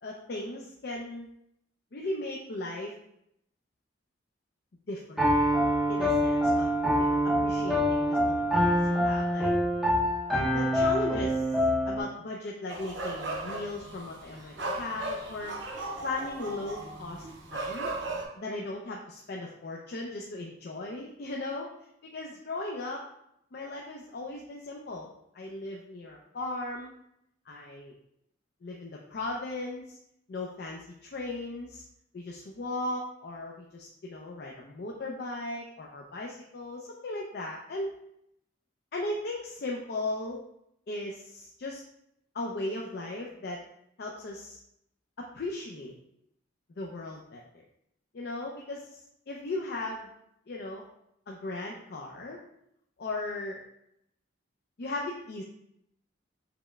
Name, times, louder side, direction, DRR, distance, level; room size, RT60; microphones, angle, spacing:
voice 1, 0.0-1.3 1.9-2.9 4.9-5.3 5.9-6.7 7.0-9.5 10.5-11.4 11.8-15.5 16.0-17.9 18.4-21.7 22.1-23.0 23.5-26.9 27.5-28.0 28.6-30.0 30.3-31.8 32.1-38.0 38.9-40.4 40.9-41.8 42.3-43.6 44.0-44.6 45.2-45.9 46.8-47.6 48.1-49.0 49.3-50.1 50.5-50.9 51.3-52.4 53.0-53.6 54.8-55.4, left 2 dB, 55° left, -1 dB, 0.4 m, -37 dB
Piano, 5.2-12.0, equal, ahead, 0.6 m, -25 dB
sound 1, 12.7-18.3, right 2 dB, 75° right, 0.8 m, -37 dB
6.8 x 3.0 x 2.2 m, 0.77 s
head